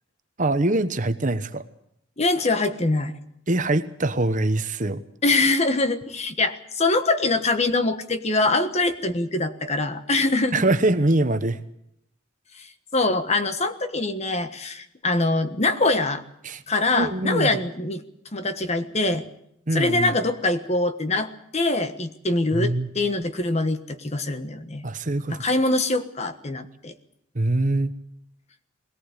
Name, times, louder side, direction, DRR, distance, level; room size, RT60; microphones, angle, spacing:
voice 1, 0.4-1.6 3.5-5.0 10.5-11.6 16.4-16.6 17.0-17.5 19.7-20.1 22.5-22.9 24.8-25.4 27.3-27.9, right 2 dB, 40° right, 10 dB, 1.1 m, -23 dB
voice 2, 2.2-3.2 5.2-10.6 12.9-16.2 16.7-18.0 18.3-19.2 19.7-24.8 25.3-26.9, left 2 dB, 35° left, 9 dB, 1.3 m, -23 dB
21.0 x 18.0 x 8.3 m, 0.76 s
head